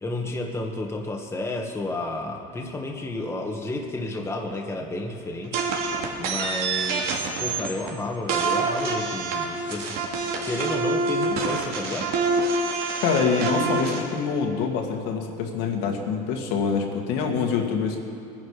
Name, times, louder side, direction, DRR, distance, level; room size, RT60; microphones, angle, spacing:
voice 1, 0.0-10.0 10.4-12.1, left 2 dB, 15° left, 1 dB, 1.6 m, -31 dB
sound 1, 5.5-7.9 8.3-14.0, right 3 dB, 65° right, 2.8 m, -26 dB
voice 2, 13.0-18.0, left 5 dB, 70° left, 1 dB, 2.2 m, -25 dB
21.0 x 10.5 x 5.1 m, 2.5 s
supercardioid pair, 120°, 17 cm